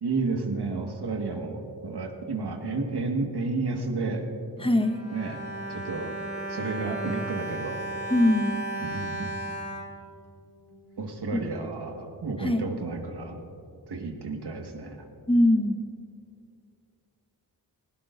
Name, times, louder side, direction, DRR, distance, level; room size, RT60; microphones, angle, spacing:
voice 1, 0.0-4.2 5.1-5.4 5.7-6.2 6.5-7.8 8.8-9.3 11.0-13.4 13.9-15.1, right 3 dB, 65° right, 3 dB, 1.8 m, -31 dB
voice 2, 4.6-5.0 8.1-8.5 11.3-11.4 12.4-12.7 15.3-15.8, left 1 dB, 10° left, 6 dB, 1.3 m, -22 dB
Bowed string instrument, 4.6-10.8 11.5-11.6 11.9-12.0, right 1 dB, 35° right, 3.0 m, -35 dB
18.5 x 16.5 x 2.7 m, 2.6 s
cardioid pair, 50°, 43 cm